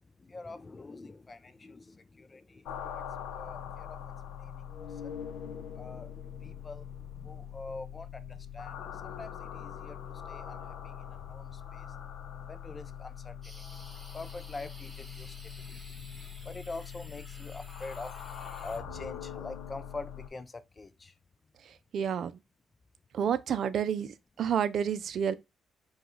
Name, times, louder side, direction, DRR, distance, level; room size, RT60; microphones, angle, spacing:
voice 1, 0.2-3.0 3.3-4.1 4.4-10.0 10.3-10.6 10.8-11.9 12.5-13.6 14.1-15.9 16.4-18.1 18.6-21.1, left 3 dB, 25° left, 0.4 m, -45 dB
sound 1, 2.7-20.3, left 8 dB, 90° left, 0.7 m, -43 dB
sound 2, 13.4-18.8, equal, ahead, 2.3 m, -53 dB
voice 2, 21.9-22.4 23.1-24.1 24.4-25.3, right 8 dB, 65° right, 0.4 m, -29 dB
4.8 x 2.3 x 3.9 m
cardioid pair, 90°, 0 cm